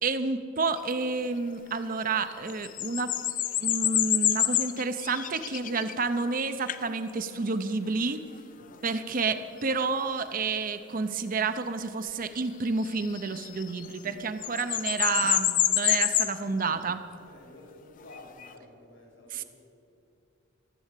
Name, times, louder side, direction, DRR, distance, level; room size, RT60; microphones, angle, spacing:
voice 1, 0.0-3.1 3.6-8.2 8.8-17.0 19.3-19.4, right 4 dB, 45° right, 10 dB, 0.6 m, -30 dB
sound 1, 0.8-0.9 2.3-6.3 6.7-6.9 8.3-8.4 12.8-14.1 14.4-16.4 18.1-18.5, left 11 dB, 40° left, 0.5 m, -27 dB
voice 2, 8.5-8.9 17.1-19.5, left 2 dB, 80° left, 0 dB, 3.8 m, -51 dB
14.0 x 7.7 x 8.2 m, 2.6 s
head